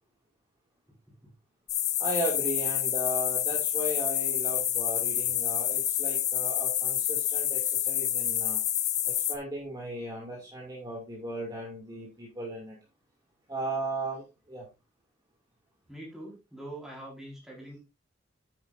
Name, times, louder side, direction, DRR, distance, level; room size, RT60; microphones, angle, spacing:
sound 1, 1.7-9.3, left 11 dB, 35° left, 1.0 m, -28 dB
voice 1, 2.0-8.6 9.1-12.8 13.5-14.7, right 1 dB, 20° right, -2 dB, 2.4 m, -36 dB
voice 2, 15.9-17.8, right 1 dB, ahead, -3 dB, 4.7 m, -43 dB
9.9 x 8.9 x 2.6 m, 0.26 s
head